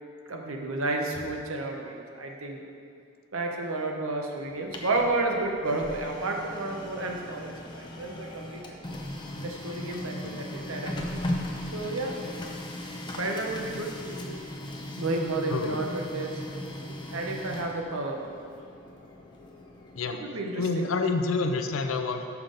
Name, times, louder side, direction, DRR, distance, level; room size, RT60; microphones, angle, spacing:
voice 1, 0.3-2.6 3.3-8.6 9.4-11.0 11.7-12.1 13.2-14.4 15.0-16.4 16.7-16.8 17.1-18.2 20.2-20.8, right 2 dB, 75° right, 1 dB, 0.8 m, -31 dB
Printer, 4.4-20.2, left 1 dB, 20° left, 0.5 m, -38 dB
voice 2, 20.6-22.2, left 4 dB, 70° left, 6 dB, 0.5 m, -28 dB
6.6 x 5.8 x 3.9 m, 2.6 s
head